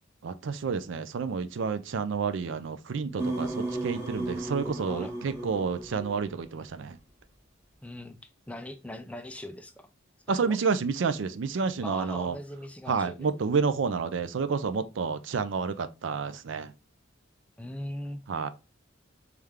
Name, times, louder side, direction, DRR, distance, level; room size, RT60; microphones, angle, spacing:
voice 1, 0.2-7.0 10.3-12.4 12.9-16.7 18.3-18.5, right 5 dB, 65° right, 0.4 m, -30 dB
sound 1, 3.2-6.5, right 2 dB, 15° right, 0.9 m, -34 dB
voice 2, 7.8-9.9 10.4-10.6 11.8-13.3 17.6-18.2, left 1 dB, 5° left, 0.3 m, -40 dB
3.4 x 3.2 x 3.5 m
head